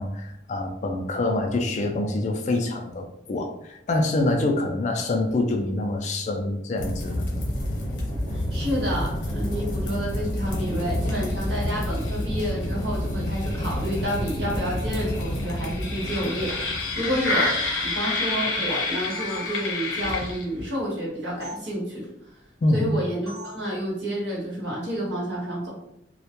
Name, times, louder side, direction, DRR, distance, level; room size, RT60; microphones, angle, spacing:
voice 1, 0.0-7.3 22.6-22.9, left 2 dB, 40° left, 4 dB, 0.3 m, -26 dB
sound 1, 6.8-20.7, left 1 dB, 85° left, 0.8 m, -28 dB
voice 2, 8.3-17.5 17.8-22.1 22.7-25.7, equal, 75° right, -4 dB, 1.0 m, -29 dB
sound 2, 18.7-20.0 21.4-21.6 23.3-23.7, left 2 dB, 15° right, 0.7 m, -40 dB
2.2 x 2.1 x 2.8 m, 0.80 s
head